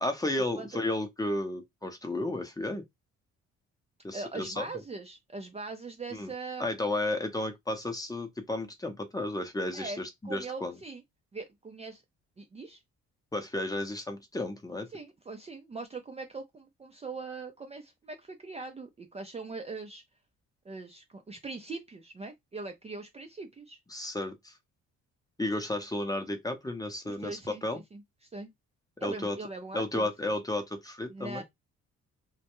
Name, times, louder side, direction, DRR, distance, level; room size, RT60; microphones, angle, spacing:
voice 1, 0.0-2.8 4.0-4.6 6.1-6.3 6.6-10.8 13.3-14.9 23.9-24.5 25.4-27.8 29.0-29.4 29.7-31.4, left 1 dB, 10° left, 0.7 m, -33 dB
voice 2, 4.1-6.7 9.7-11.0 11.3-12.0 12.4-12.8 14.9-20.0 20.6-23.8 27.1-28.0 28.3-28.5 29.0-30.3 31.1-31.4, right 3 dB, 20° right, 0.4 m, -41 dB
2.2 x 2.1 x 2.9 m
cardioid pair, 90°, 30 cm